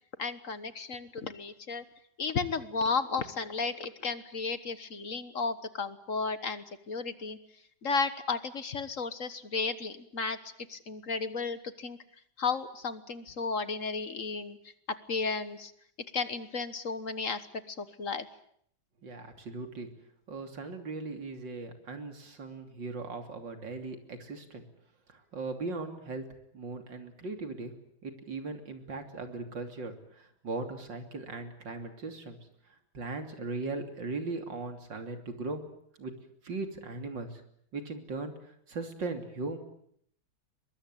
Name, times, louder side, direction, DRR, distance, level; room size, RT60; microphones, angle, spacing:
voice 1, 0.2-1.8 2.2-7.4 7.8-10.4 10.7-12.0 12.4-14.6 15.1-15.7 16.1-17.4 17.7-18.3, left 4 dB, 45° left, 12 dB, 1.6 m, -33 dB
voice 2, 19.0-19.9 20.3-24.6 25.1-26.3 26.5-27.8 28.0-32.4 32.9-35.6 36.0-36.1 36.4-37.4 37.7-38.3 38.7-39.6, right 3 dB, 65° right, 6 dB, 3.7 m, -38 dB
23.0 x 22.5 x 9.0 m, 0.67 s
omnidirectional pair, 2.1 m